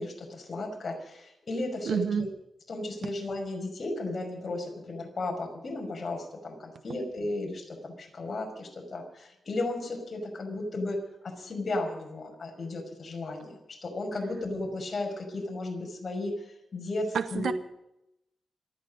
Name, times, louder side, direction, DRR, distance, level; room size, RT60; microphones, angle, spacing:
voice 1, 0.0-2.3 2.7-11.0 11.2-16.4 16.7-17.5, left 2 dB, 40° left, 2 dB, 5.8 m, -34 dB
voice 2, 1.8-2.3 17.1-17.5, right 7 dB, 85° right, 10 dB, 1.0 m, -28 dB
27.0 x 9.8 x 5.3 m, 0.84 s
wide cardioid pair, 125°, 0 cm